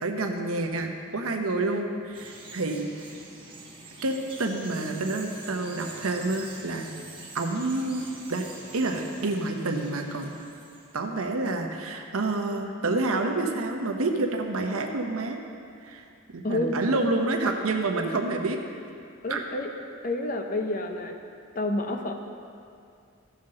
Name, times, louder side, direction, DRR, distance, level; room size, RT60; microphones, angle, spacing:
voice 1, 0.0-2.9 4.0-6.9 7.3-8.5 8.7-10.3 10.9-15.4 15.8-16.0 16.3-18.6 19.3-19.4, right 2 dB, 75° right, 4 dB, 0.8 m, -28 dB
Bird vocalization bird call bird song, 2.1-11.0, right 3 dB, 25° right, 1.3 m, -45 dB
voice 2, 16.4-16.8 19.2-19.7 20.0-21.2 21.5-22.1, left 2 dB, 40° left, 4 dB, 0.7 m, -29 dB
14.0 x 5.8 x 3.8 m, 2.4 s
head